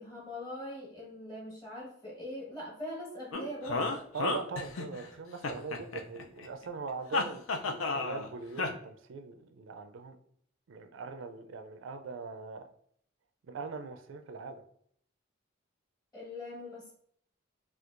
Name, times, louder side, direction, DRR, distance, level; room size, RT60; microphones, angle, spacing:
voice 1, 0.0-4.0 16.1-16.9, left 1 dB, 20° left, 1.2 m, -42 dB
sound 1, 3.3-5.1 5.4-6.5 7.1-8.3 8.6-8.7, left 3 dB, 85° left, 0.5 m, -32 dB
voice 2, 4.1-10.2 10.7-12.7 13.5-14.6, right 4 dB, 70° right, 0.4 m, -41 dB
4.3 x 2.3 x 2.5 m
head